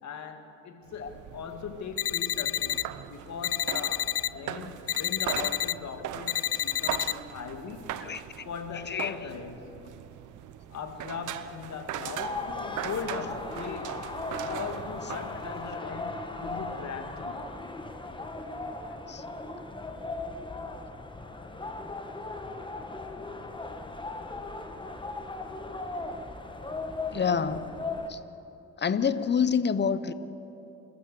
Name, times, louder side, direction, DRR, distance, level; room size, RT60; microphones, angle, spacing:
voice 1, 0.0-8.0 8.4-9.8 10.7-14.1 14.5-17.6, left 6 dB, 65° left, 6 dB, 2.2 m, -39 dB
sound 1, 0.9-15.8, right 11 dB, 80° right, 0.9 m, -40 dB
sound 2, 2.0-2.8 3.4-4.3 4.9-5.7 6.3-7.1, left 12 dB, 50° left, 0.5 m, -29 dB
voice 2, 8.7-9.3 13.2-13.3 15.0-15.2 19.1-19.2 27.1-27.7 28.1-28.2 28.8-30.1, left 6 dB, 35° left, 14 dB, 1.0 m, -28 dB
sound 3, 12.2-28.1, left 2 dB, 15° left, 1.6 m, -37 dB
28.5 x 14.0 x 7.0 m, 2.9 s
cardioid pair, 90°, 30 cm